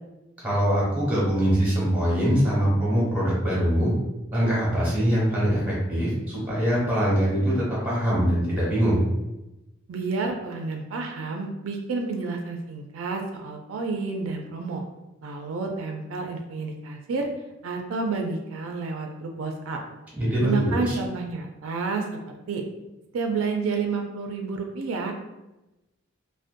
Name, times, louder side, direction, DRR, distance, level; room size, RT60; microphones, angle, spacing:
voice 1, 0.4-3.9 4.3-9.0 20.2-20.9, equal, 5° right, -7 dB, 1.0 m, -23 dB
voice 2, 9.9-14.8 15.2-17.3 17.6-19.8 20.4-22.2 22.5-22.6 23.1-25.1, right 4 dB, 80° right, 3 dB, 0.3 m, -30 dB
2.5 x 2.1 x 2.5 m, 0.99 s
head